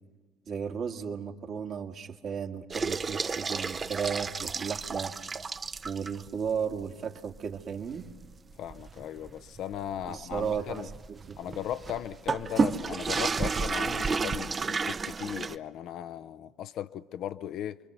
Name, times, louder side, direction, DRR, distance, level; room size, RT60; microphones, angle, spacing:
voice 1, 0.5-5.1 5.8-8.1 10.0-11.6, right 7 dB, 50° right, 1.8 m, -35 dB
sound 1, 2.7-6.3 6.7-6.8 7.3-7.4 7.9-15.6, right 4 dB, 30° right, 0.7 m, -32 dB
voice 2, 8.6-10.9 11.4-17.8, left 10 dB, 60° left, 0.7 m, -37 dB
28.0 x 23.0 x 6.8 m
hypercardioid pair, 60°, 0 cm